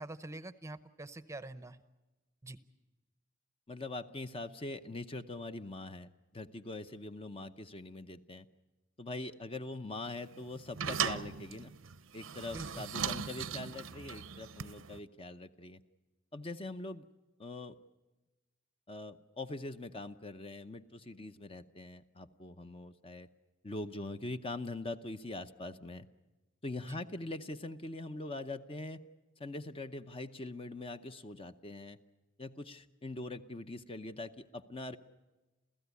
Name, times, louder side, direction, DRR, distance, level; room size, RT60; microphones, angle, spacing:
voice 1, 0.0-1.8 2.4-2.6 12.5-12.9 26.8-27.0, right 2 dB, 15° right, 13 dB, 0.7 m, -45 dB
voice 2, 3.7-8.5 9.0-11.7 12.1-15.8 16.3-17.0 17.4-17.7 18.9-23.3 23.6-26.1 26.6-29.0 29.4-32.0 32.4-35.0, left 2 dB, 30° left, 9 dB, 0.7 m, -43 dB
sound 1, 10.1-15.0, right 7 dB, 80° right, 0.8 m, -38 dB
28.5 x 15.5 x 8.3 m, 1.1 s
head